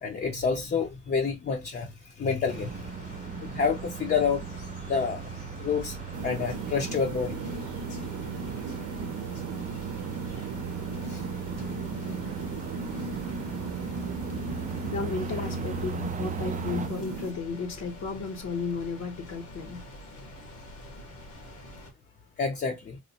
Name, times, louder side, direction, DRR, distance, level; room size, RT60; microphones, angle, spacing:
voice 1, 0.0-2.9 3.4-4.4 4.9-5.2 5.6-6.0 6.2-7.3 11.1-11.2 22.4-23.0, left 5 dB, 35° left, 0.6 m, -28 dB
sound 1, 2.5-21.9, left 1 dB, 90° left, 1.4 m, -46 dB
sound 2, 2.5-16.9, right 5 dB, 25° right, 0.4 m, -37 dB
sound 3, 6.1-17.3, right 4 dB, 75° right, 0.7 m, -37 dB
voice 2, 14.8-19.8, left 4 dB, 65° left, 0.9 m, -33 dB
3.1 x 2.0 x 4.0 m
cardioid pair, 90°, 30 cm